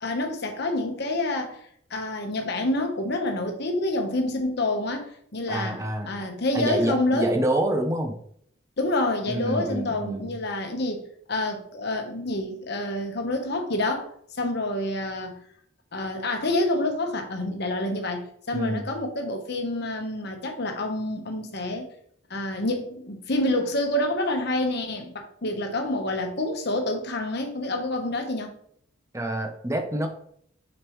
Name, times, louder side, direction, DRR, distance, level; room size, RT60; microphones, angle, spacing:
voice 1, 0.0-1.6 1.9-7.3 8.8-11.0 11.3-14.1 14.4-15.4 15.9-21.9 22.3-28.5, left 1 dB, 55° left, 1.1 m, -27 dB
voice 2, 5.5-6.3 6.5-8.1 9.3-10.3 18.5-18.9 29.1-30.1, right 1 dB, 15° right, 0.8 m, -27 dB
6.7 x 5.2 x 3.1 m
head